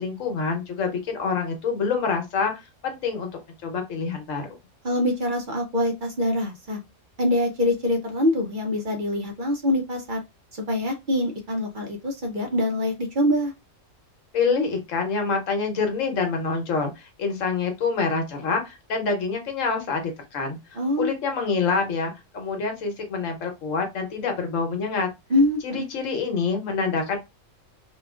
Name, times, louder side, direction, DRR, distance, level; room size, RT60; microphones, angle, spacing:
voice 1, 0.0-3.3 3.6-4.5 14.3-25.1 25.6-27.2, left 4 dB, 80° left, 4 dB, 1.1 m, -26 dB
voice 2, 4.8-6.8 7.2-10.2 10.7-13.5 20.7-21.1 25.3-25.9, left 1 dB, 50° right, 2 dB, 0.7 m, -24 dB
3.0 x 2.4 x 2.3 m, 0.22 s
omnidirectional pair, 1.3 m